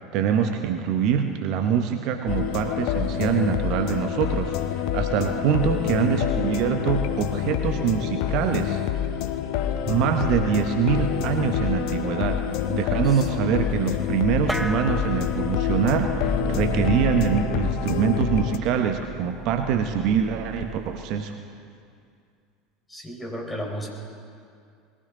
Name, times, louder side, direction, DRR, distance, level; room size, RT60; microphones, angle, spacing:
voice 1, 0.1-8.8 9.7-12.4 12.7-21.3, right 8 dB, 55° right, 6 dB, 0.9 m, -24 dB
sound 1, 2.3-18.6, left 10 dB, 55° left, 0.8 m, -27 dB
voice 2, 13.0-13.5 22.9-23.9, equal, 10° left, -1 dB, 4.1 m, -34 dB
sound 2, 14.5-21.2, right 2 dB, 5° right, 0.9 m, -33 dB
21.0 x 15.5 x 3.8 m, 2.3 s
figure-of-eight pair, 75°, 0 cm